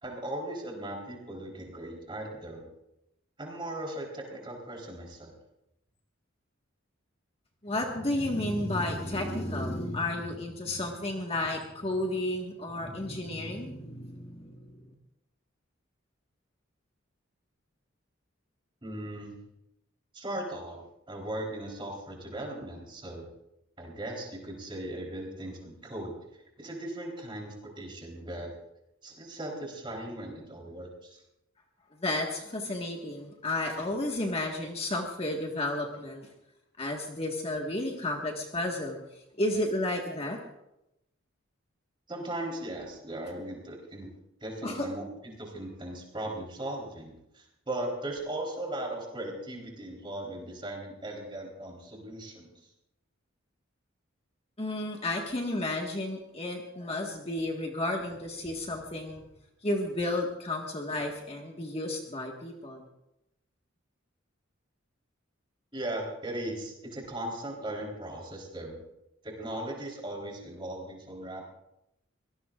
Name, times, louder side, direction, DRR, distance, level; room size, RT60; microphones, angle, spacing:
voice 1, 0.0-2.6 3.4-5.4 18.8-19.4 20.1-23.3 23.8-28.5 29.0-31.2 42.1-44.1 44.4-45.0 45.4-52.5 65.7-68.8 69.2-71.5, right 1 dB, 25° right, 0 dB, 3.9 m, -38 dB
voice 2, 7.6-14.8 32.0-36.3 36.8-39.0 39.4-40.4 44.6-44.9 54.6-59.2 59.6-62.8, left 1 dB, 30° left, 1 dB, 1.6 m, -32 dB
24.0 x 18.5 x 2.5 m, 0.86 s
head